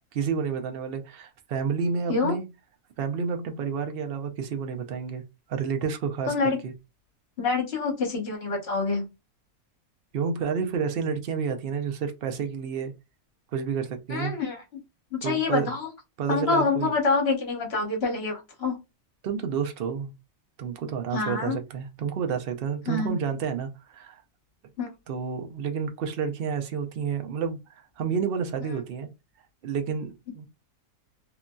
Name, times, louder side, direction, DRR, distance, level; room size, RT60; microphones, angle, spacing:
voice 1, 0.1-2.5 3.0-5.2 5.5-6.7 10.1-12.9 13.5-14.3 15.2-15.7 16.2-16.9 19.2-20.1 20.6-24.2 25.1-29.1 29.6-30.5, right 6 dB, 60° right, 0.6 m, -30 dB
voice 2, 6.3-6.6 7.4-9.1 14.1-14.6 15.1-15.9 16.3-18.8 21.1-21.6 22.9-23.1 24.8-24.9, left 4 dB, 50° left, 1.2 m, -26 dB
2.8 x 2.5 x 2.2 m
omnidirectional pair, 1.4 m